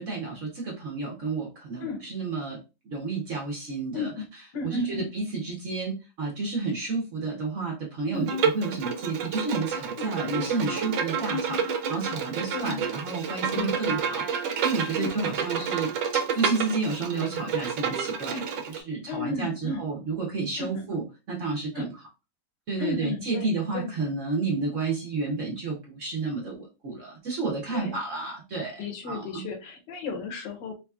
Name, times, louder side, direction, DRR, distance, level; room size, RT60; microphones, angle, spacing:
voice 1, 0.0-2.6 2.8-4.1 4.6-18.4 18.7-21.9 22.7-29.4, right 4 dB, 50° right, -1 dB, 1.1 m, -31 dB
voice 2, 3.9-4.3 4.5-5.1 8.1-8.3 12.5-12.8 13.5-14.0 15.0-15.1 18.3-18.5 19.1-19.9 20.6-20.8 21.7-21.9 22.8-23.9 27.7-28.0 28.8-30.7, left 4 dB, 80° left, 3 dB, 1.5 m, -34 dB
Bowed string instrument, 8.3-18.8, right 6 dB, 80° right, 1.3 m, -29 dB
3.9 x 2.9 x 2.3 m, 0.29 s
omnidirectional pair, 2.0 m